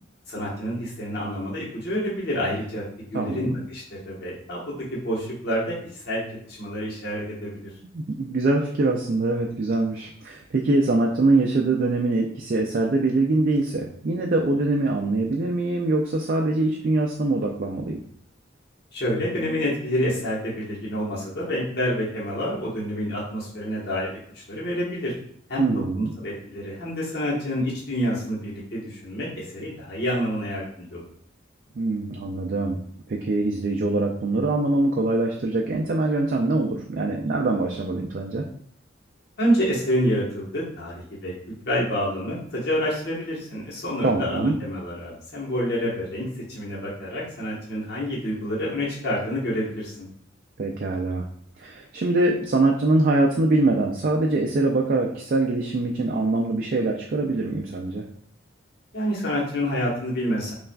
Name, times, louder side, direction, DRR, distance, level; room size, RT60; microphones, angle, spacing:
voice 1, 0.3-2.8 3.1-6.2 6.5-7.5 18.9-24.1 24.3-25.1 25.5-25.6 25.9-31.0 39.4-41.3 41.6-50.1 58.9-60.5, equal, 55° left, -6 dB, 1.1 m, -28 dB
voice 2, 3.1-3.6 7.8-18.0 25.6-26.1 31.7-32.8 33.1-38.4 44.0-44.5 50.6-51.3 51.6-58.0, right 2 dB, 50° right, 1 dB, 0.4 m, -23 dB
5.5 x 2.4 x 2.2 m, 0.62 s
head